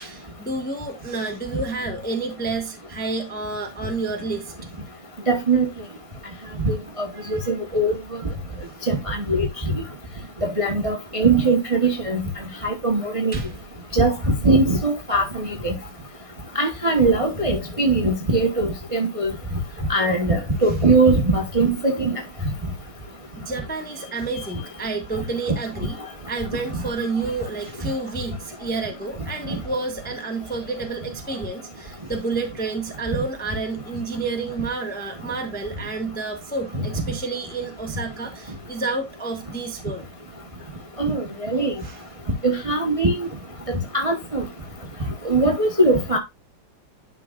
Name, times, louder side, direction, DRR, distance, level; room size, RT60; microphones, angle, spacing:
voice 1, 0.0-4.5 7.1-7.5 8.7-8.9 13.3-13.5 23.4-40.0 41.8-42.0, right 3 dB, 5° left, 0.8 m, -30 dB
voice 2, 5.3-5.7 6.6-7.1 7.5-8.0 8.9-9.5 10.6-12.2 12.6-13.4 13.9-15.7 16.5-19.3 19.9-22.1 41.0-41.7 42.4-43.3 43.7-44.4 45.2-46.2, right 2 dB, 20° right, 0.9 m, -21 dB
11.0 x 5.9 x 2.4 m
omnidirectional pair, 2.4 m